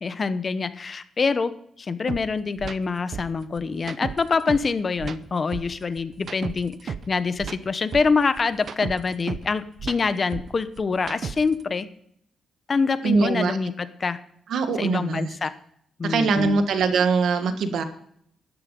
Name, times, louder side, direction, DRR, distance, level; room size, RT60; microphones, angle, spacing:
voice 1, 0.0-1.5 1.8-11.9 12.7-14.2 14.8-15.5 16.0-16.6, left 4 dB, 40° left, 12 dB, 0.9 m, -25 dB
sound 1, 2.1-2.2 2.6-2.8 3.1-4.7 5.0-7.1 7.4-9.5 9.8-11.6, right 6 dB, 55° right, 0.8 m, -34 dB
voice 2, 13.0-13.6 14.5-15.3 16.0-17.8, right 4 dB, 75° right, 8 dB, 1.5 m, -22 dB
12.5 x 11.0 x 5.3 m, 0.68 s
cardioid pair, 100°, 0 cm